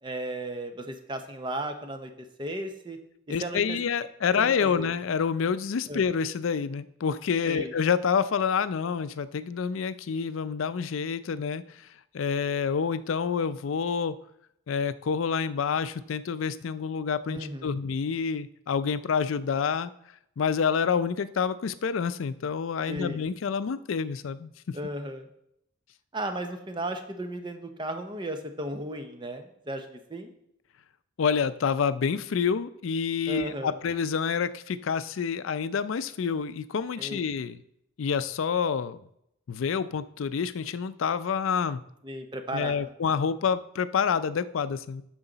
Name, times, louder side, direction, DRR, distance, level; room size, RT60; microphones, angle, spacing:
voice 1, 0.0-2.1 2.4-3.0 3.4-3.8 4.3-4.9 5.9-6.0 7.5-7.7 17.3-17.8 22.9-23.2 24.7-25.3 26.1-30.3 33.3-33.8 37.0-37.2 42.0-42.8, right 1 dB, 25° right, 6 dB, 0.7 m, -35 dB
voice 2, 3.3-11.8 12.1-14.2 14.7-19.9 20.4-24.8 31.2-37.6 38.0-39.0 39.5-41.8 42.5-45.0, left 6 dB, 75° left, 14 dB, 0.4 m, -28 dB
9.7 x 6.4 x 3.9 m, 0.76 s
head